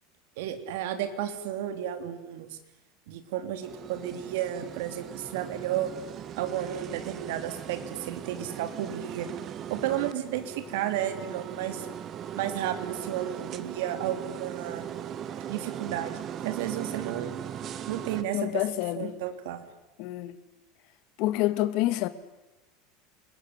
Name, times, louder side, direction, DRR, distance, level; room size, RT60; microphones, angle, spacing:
voice 1, 0.4-2.6 3.1-5.9 6.4-9.3 9.7-11.9 12.4-14.9 15.5-17.4 17.9-18.6 19.0-19.7, right 11 dB, 70° right, 3.3 m, -32 dB
sound 1, 3.6-18.2, right 9 dB, 30° right, 1.4 m, -39 dB
voice 2, 18.3-19.1 20.0-20.4 21.2-22.1, left 15 dB, 50° left, 1.9 m, -27 dB
28.5 x 21.5 x 9.8 m
supercardioid pair, 165°, 0 cm